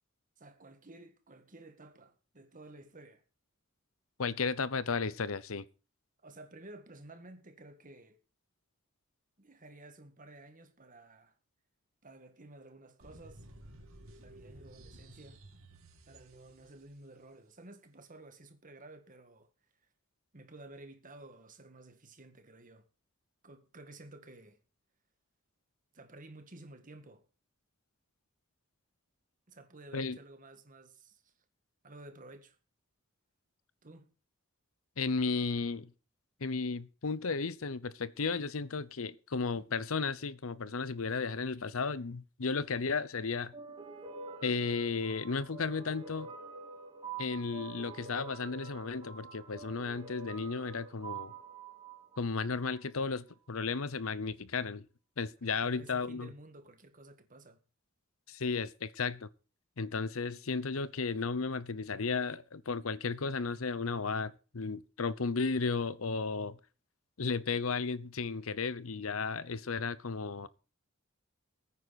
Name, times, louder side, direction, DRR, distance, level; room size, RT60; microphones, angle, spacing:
voice 1, 0.4-3.2 6.2-8.2 9.4-11.3 12.0-13.5 14.2-15.4 16.1-19.5 20.3-22.9 23.4-24.6 25.9-27.3 29.5-31.3 31.8-32.6 33.8-34.1 55.6-57.6, right 2 dB, 40° right, 2.0 m, -53 dB
voice 2, 4.2-5.7 29.9-30.2 35.0-35.9 36.4-43.5 44.4-46.3 47.2-51.3 52.2-54.9 55.2-56.3 58.3-59.3 59.8-66.6 67.2-70.5, left 4 dB, 80° left, 0.8 m, -34 dB
sound 1, 13.0-16.9, right 1 dB, 90° right, 2.7 m, -54 dB
sound 2, 43.5-52.8, right 5 dB, 20° right, 4.6 m, -47 dB
21.5 x 9.4 x 4.2 m
head